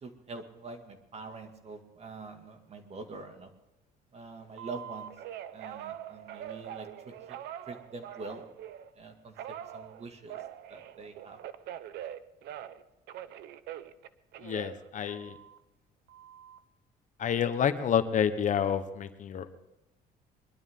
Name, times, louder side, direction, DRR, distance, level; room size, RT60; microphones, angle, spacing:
voice 1, 0.0-3.5 4.1-5.1 5.5-7.4 7.7-8.5 9.0-10.4 10.7-11.4, right 3 dB, 40° right, 5 dB, 2.2 m, -45 dB
Telephone, 4.6-8.9 9.4-12.8 13.1-15.6 16.1-16.6, right 11 dB, 75° right, 0.8 m, -43 dB
voice 2, 14.4-15.4 17.2-19.5, left 8 dB, 50° left, 10 dB, 1.0 m, -29 dB
22.0 x 12.5 x 3.7 m, 0.97 s
cardioid pair, 110°, 17 cm